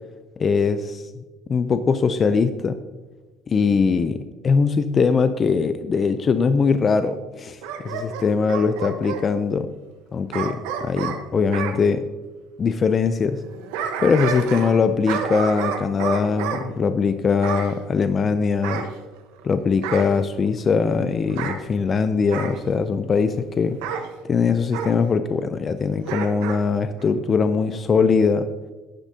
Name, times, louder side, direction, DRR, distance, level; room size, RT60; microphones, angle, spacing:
voice 1, 0.4-1.2 1.5-2.8 3.5-9.7 10.1-12.1 12.6-13.4 14.0-18.8 19.4-23.8 24.2-28.5, left 5 dB, 35° left, 10 dB, 0.5 m, -21 dB
Bark / Growling, 7.6-9.2 10.3-11.8 13.4-14.8 15.1-16.6 17.4-17.7 18.6-19.4 19.8-20.2 21.3-21.6 22.3-22.6 23.8-24.1 24.7-24.9 26.0-26.6 27.0-27.1, right 7 dB, 90° right, 1.1 m, -29 dB
11.0 x 10.5 x 2.8 m, 1.3 s
supercardioid pair, 100°, 0 cm